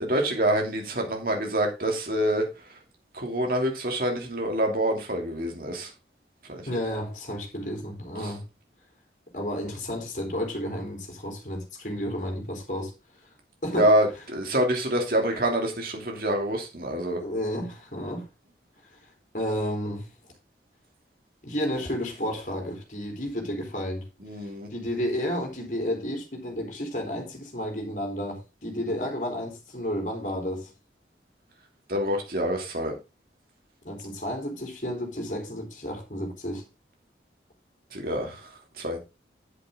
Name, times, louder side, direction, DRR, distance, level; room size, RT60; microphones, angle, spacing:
voice 1, 0.0-2.7 3.1-5.9 6.5-6.7 8.2-8.3 13.8-17.2 24.2-24.7 31.9-32.9 37.9-38.5 38.8-39.0, right 1 dB, 55° right, 2.8 m, -26 dB
voice 2, 6.7-8.4 9.3-12.9 13.6-13.9 17.2-18.3 19.3-20.1 21.4-24.1 24.7-30.7 33.8-36.6, equal, 45° left, 3.6 m, -31 dB
9.8 x 8.4 x 3.7 m
head